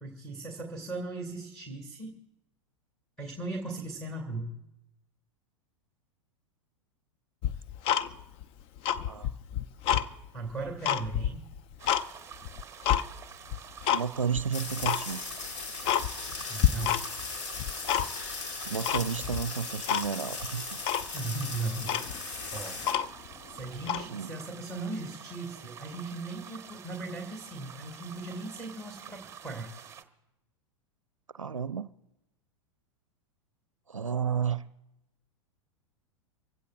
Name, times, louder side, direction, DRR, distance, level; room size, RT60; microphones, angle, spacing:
voice 1, 0.0-2.2 3.2-4.6 10.3-11.5 16.5-17.0 21.1-23.1 23.5-29.7, right 2 dB, 5° left, 2.2 m, -38 dB
Tick-tock, 7.4-8.4 8.8-10.1 10.5-12.1 12.4-13.0 13.5-14.0 14.3-14.4 14.8-15.0 15.4-15.5 15.8-16.4 16.6-17.3 17.5-18.3 18.9-19.4 19.9-20.1 20.4-20.5 20.8-21.1 21.6-21.7 21.8-23.3 23.8-24.1, left 10 dB, 35° left, 0.6 m, -28 dB
sound 1, 11.8-30.0, right 8 dB, 15° right, 1.1 m, -48 dB
voice 2, 13.9-15.2 18.7-20.6 24.1-24.3 31.3-31.9 33.9-34.6, right 7 dB, 85° right, 0.4 m, -32 dB
sound 2, 14.5-22.9, left 4 dB, 60° left, 2.5 m, -38 dB
24.5 x 16.0 x 2.5 m
figure-of-eight pair, 95°, 16 cm